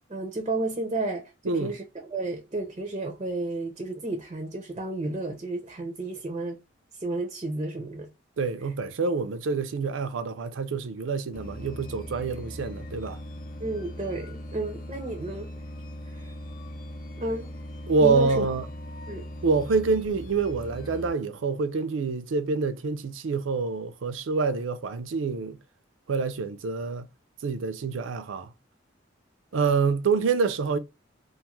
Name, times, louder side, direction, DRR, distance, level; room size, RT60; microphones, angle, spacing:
voice 1, 0.1-6.6 7.0-8.1 13.6-15.5 16.1-16.3 17.2-17.5 18.0-18.5 19.1-19.2, right 2 dB, 30° right, 0.5 m, -32 dB
voice 2, 1.4-1.8 8.4-13.2 17.9-18.7 19.4-25.6 26.1-27.1 27.4-28.5 29.5-30.8, right 4 dB, 85° right, 0.4 m, -26 dB
sound 1, 11.3-21.1, equal, 50° left, 0.6 m, -40 dB
2.5 x 2.4 x 2.8 m
head